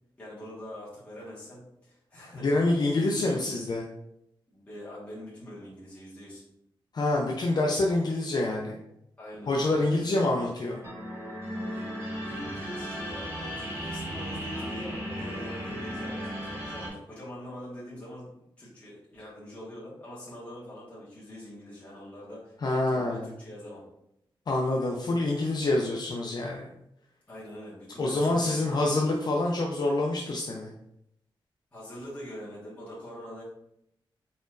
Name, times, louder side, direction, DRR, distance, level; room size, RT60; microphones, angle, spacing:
voice 1, 0.2-2.6 3.1-3.3 4.5-6.4 9.2-10.2 11.6-23.8 27.3-29.1 31.7-33.4, equal, 15° left, -9 dB, 1.5 m, -44 dB
voice 2, 2.3-3.9 6.9-8.8 9.5-10.8 22.6-23.3 24.5-26.7 28.0-30.7, left 2 dB, 50° left, -1 dB, 0.5 m, -26 dB
sound 1, 10.7-16.9, equal, 30° right, 1.5 m, -36 dB
4.2 x 4.0 x 2.5 m, 0.79 s
wide cardioid pair, 150°, 9 cm